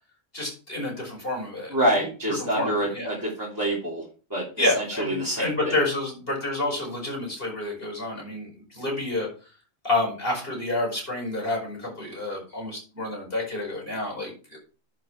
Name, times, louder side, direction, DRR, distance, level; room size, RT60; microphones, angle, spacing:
voice 1, 0.3-2.1 2.5-3.1 4.6-9.3 9.8-14.6, left 2 dB, 40° left, -1 dB, 5.1 m, -29 dB
voice 2, 1.7-4.0 4.3-4.4 4.7-5.8, right 1 dB, 15° right, -6 dB, 2.9 m, -26 dB
11.0 x 5.9 x 4.6 m, 0.36 s
omnidirectional pair, 1.5 m